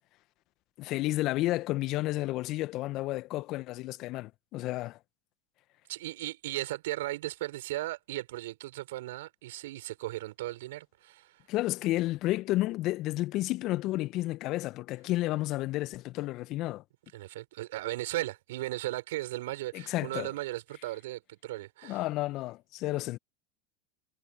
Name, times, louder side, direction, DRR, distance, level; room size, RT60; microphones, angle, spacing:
voice 1, 0.8-5.0 11.5-16.8 19.7-20.3 21.8-23.2, left 17 dB, 50° left, 1.7 m, -31 dB
voice 2, 5.9-11.4 17.1-22.0, right 17 dB, 65° right, 5.8 m, -36 dB
hypercardioid pair, 80°, 0 cm